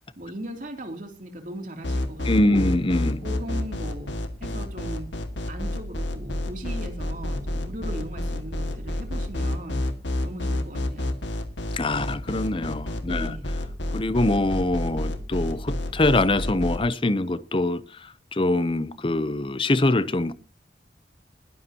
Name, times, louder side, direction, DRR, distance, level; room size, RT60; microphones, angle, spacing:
voice 1, 0.2-2.7 3.2-5.1 5.5-9.9 10.2-11.2 13.1-13.5, right 1 dB, 45° right, 3.0 m, -38 dB
sound 1, 1.8-16.8, left 1 dB, 85° left, 2.0 m, -28 dB
voice 2, 2.2-3.2 11.7-13.4 13.9-20.3, left 2 dB, 30° left, 0.7 m, -24 dB
20.5 x 11.5 x 2.9 m
head